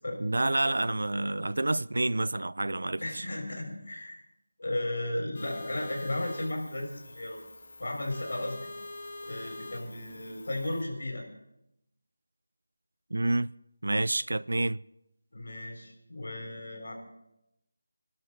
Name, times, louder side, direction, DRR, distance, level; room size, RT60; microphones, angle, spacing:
voice 1, 0.2-3.2 13.1-13.5 13.8-14.8, right 2 dB, 80° right, 0.5 m, -28 dB
voice 2, 3.0-4.2 4.6-7.4 7.8-8.7 9.2-11.2 15.3-16.9, left 1 dB, 75° left, 6.8 m, -35 dB
sound 1, 5.3-10.8, left 2 dB, 35° left, 2.6 m, -44 dB
27.0 x 12.0 x 4.2 m
figure-of-eight pair, 175°, 0 cm